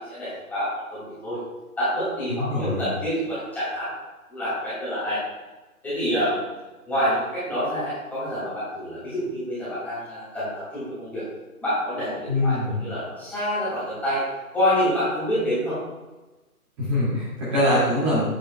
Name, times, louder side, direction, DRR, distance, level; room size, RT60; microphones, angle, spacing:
voice 1, 0.0-1.4 1.8-3.9 4.3-5.2 5.8-6.4 6.9-11.2 11.6-14.2 14.5-15.8, equal, 5° left, -12 dB, 2.5 m, -27 dB
voice 2, 2.3-2.9 12.3-12.8 16.8-18.2, left 1 dB, 20° right, -9 dB, 2.4 m, -23 dB
8.7 x 8.6 x 2.3 m, 1.2 s
figure-of-eight pair, 155°, 44 cm